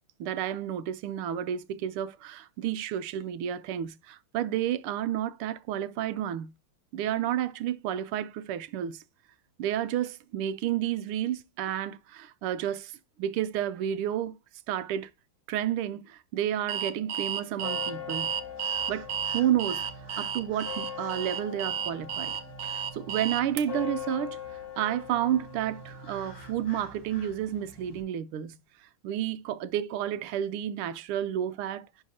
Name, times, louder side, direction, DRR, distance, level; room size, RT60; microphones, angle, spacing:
voice 1, 0.2-6.5 6.9-9.0 9.6-12.9 13.2-14.4 14.7-15.1 15.5-18.3 18.9-22.3 22.6-24.4 24.8-28.6 29.0-31.9, right 11 dB, 85° right, 1.6 m, -31 dB
Alarm, 16.7-23.6, right 8 dB, 65° right, 0.9 m, -32 dB
sound 1, 17.6-28.0, left 6 dB, 45° left, 2.2 m, -42 dB
11.0 x 3.8 x 2.8 m
omnidirectional pair, 2.4 m